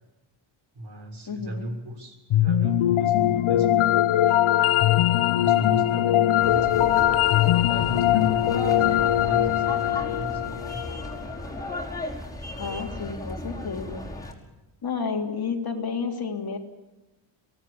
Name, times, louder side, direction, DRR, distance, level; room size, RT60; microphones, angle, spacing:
voice 1, 0.7-4.4 5.4-7.2 7.7-10.8, right 1 dB, 55° right, 3 dB, 6.7 m, -36 dB
voice 2, 1.3-1.7 12.6-14.0 14.8-16.6, left 5 dB, 50° left, 3 dB, 3.4 m, -31 dB
sound 1, 2.3-11.4, left 12 dB, 80° left, 1.0 m, -21 dB
sound 2, 6.4-14.3, left 1 dB, 5° left, 5.2 m, -36 dB
23.5 x 18.0 x 8.8 m, 1.1 s
cardioid pair, 110°, 48 cm